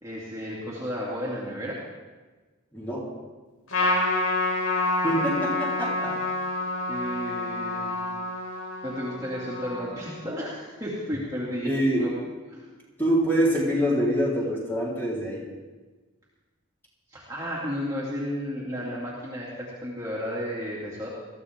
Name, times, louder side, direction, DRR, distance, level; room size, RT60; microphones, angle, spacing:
voice 1, 0.0-1.8 3.8-4.0 6.9-7.9 8.8-12.1 12.5-12.7 17.1-21.1, equal, 15° right, -6 dB, 2.6 m, -33 dB
voice 2, 2.7-3.1 5.0-6.2 11.6-12.1 13.0-15.4, equal, 10° left, -5 dB, 4.0 m, -25 dB
Trumpet, 3.7-10.4, left 2 dB, 80° left, 3.9 m, -28 dB
21.0 x 14.5 x 3.7 m, 1.3 s
head